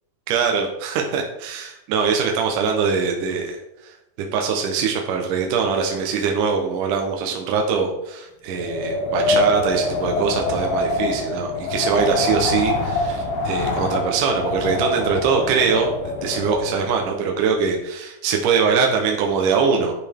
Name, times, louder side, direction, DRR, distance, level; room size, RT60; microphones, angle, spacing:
voice 1, 0.3-3.9 4.3-15.9 16.2-19.9, right 5 dB, 70° right, 2 dB, 2.4 m, -22 dB
Wind, 8.5-17.0, left 3 dB, 80° left, 3.1 m, -25 dB
11.5 x 6.9 x 3.6 m, 0.86 s
omnidirectional pair, 4.1 m